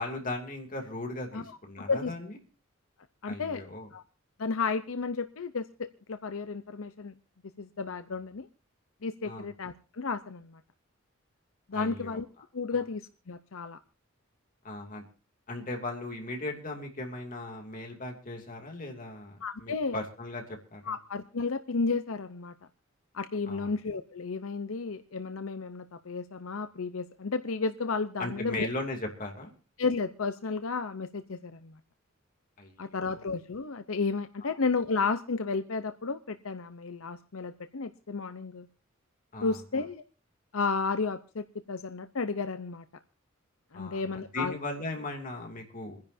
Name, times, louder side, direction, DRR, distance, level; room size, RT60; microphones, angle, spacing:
voice 1, 0.0-2.4 3.3-3.9 9.2-9.5 11.7-12.2 12.7-12.8 14.6-15.0 15.5-21.0 23.5-23.7 28.2-29.5 32.6-33.3 34.4-34.6 39.3-39.9 43.7-46.0, left 2 dB, 40° left, 2 dB, 2.8 m, -38 dB
voice 2, 3.2-3.6 3.9-4.0 4.4-7.1 7.6-8.5 9.0-10.6 11.7-12.3 12.5-13.8 19.4-20.0 20.9-22.5 23.1-28.7 29.8-31.7 32.8-38.7 39.4-40.0 40.5-42.8 43.7-44.5, left 4 dB, 85° left, 10 dB, 0.7 m, -32 dB
28.5 x 10.5 x 2.7 m, 0.34 s
head